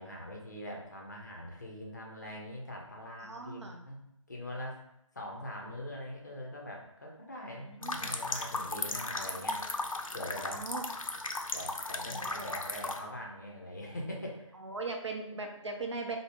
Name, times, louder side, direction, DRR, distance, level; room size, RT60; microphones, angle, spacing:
voice 1, 0.0-4.0 4.3-4.8 5.1-9.6 10.1-10.6 11.5-14.4, left 1 dB, 35° left, -1 dB, 0.5 m, -42 dB
voice 2, 3.2-3.8 7.6-8.2 10.5-10.9 12.1-12.6 14.5-16.2, right 3 dB, 55° right, 3 dB, 0.6 m, -40 dB
sound 1, 7.8-13.0, left 2 dB, 80° left, 0.5 m, -36 dB
3.6 x 2.0 x 3.2 m, 0.80 s
figure-of-eight pair, 160°, 17 cm